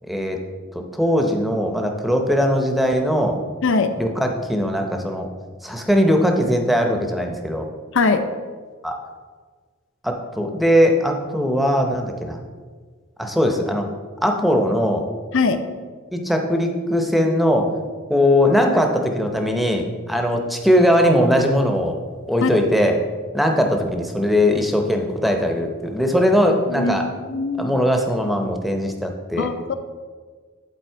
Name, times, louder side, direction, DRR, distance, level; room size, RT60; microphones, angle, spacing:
voice 1, 0.1-0.4 0.7-3.4 4.0-5.3 5.6-7.7 8.8-9.0 10.0-12.4 13.2-13.9 14.2-15.1 16.1-17.7 18.1-22.0 22.3-23.0 23.3-27.0 27.6-29.5, equal, ahead, 3 dB, 0.7 m, -20 dB
voice 2, 7.9-8.2 15.3-15.6 22.4-22.6 26.7-27.7 29.4-29.7, left 4 dB, 60° left, 8 dB, 0.6 m, -21 dB
11.0 x 4.2 x 4.5 m, 1.5 s
head